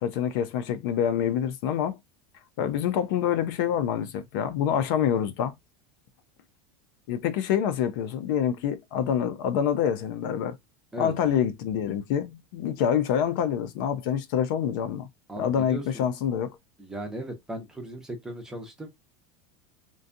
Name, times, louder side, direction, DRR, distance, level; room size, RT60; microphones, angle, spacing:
voice 1, 0.0-2.0 2.6-5.5 7.1-10.5 11.0-15.1 15.4-16.5, left 9 dB, 55° left, 0.4 m, -26 dB
voice 2, 10.9-11.3 15.3-16.1 16.8-18.9, right 1 dB, 5° right, 0.5 m, -37 dB
2.6 x 2.2 x 2.5 m
supercardioid pair, 170°, 13 cm